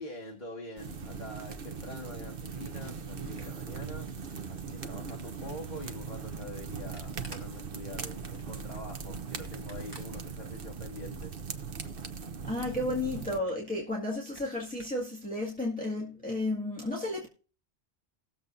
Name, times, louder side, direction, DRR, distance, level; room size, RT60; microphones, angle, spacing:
voice 1, 0.0-4.1 4.5-11.4, left 1 dB, 40° left, 2.0 m, -44 dB
sound 1, 0.8-13.4, right 5 dB, 55° right, 1.1 m, -40 dB
Camera, 1.1-4.4 4.8-10.9 11.2-12.2 12.5-12.6 12.8-12.9 13.3-15.1, right 1 dB, 20° right, 2.3 m, -55 dB
voice 2, 12.4-17.3, left 2 dB, 5° left, 2.0 m, -33 dB
20.0 x 7.3 x 2.6 m
omnidirectional pair, 1.2 m